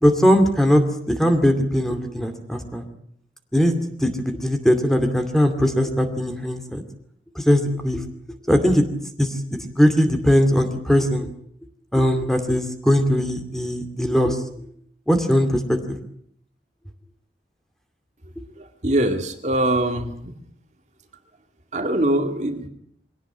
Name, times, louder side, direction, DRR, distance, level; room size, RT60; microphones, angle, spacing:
voice 1, 0.0-2.8 3.5-6.8 7.4-8.0 8.5-8.9 9.2-11.3 11.9-14.4 15.1-16.0, equal, ahead, 6 dB, 2.4 m, -20 dB
voice 2, 18.6-20.4 21.7-22.7, right 1 dB, 40° right, 5 dB, 2.2 m, -23 dB
23.5 x 17.5 x 9.0 m, 0.68 s
head